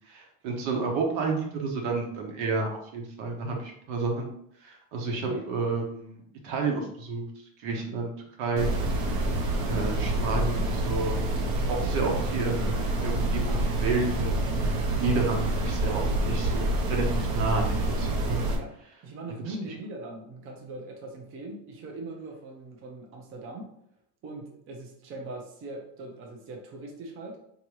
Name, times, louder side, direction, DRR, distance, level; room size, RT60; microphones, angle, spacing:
voice 1, 0.1-4.3 4.6-7.3 7.6-8.1 8.4-8.7 9.7-11.2 11.7-14.4 15.0-18.4 19.5-19.6, right 3 dB, 75° right, 1 dB, 1.1 m, -30 dB
voice 2, 5.1-5.5 18.6-18.8 19.0-23.7 24.2-27.4, right 2 dB, 30° right, 1 dB, 0.6 m, -40 dB
sound 1, 8.6-18.6, right 1 dB, 50° right, 0.8 m, -27 dB
3.6 x 2.9 x 3.0 m, 0.71 s
cardioid pair, 140°, 44 cm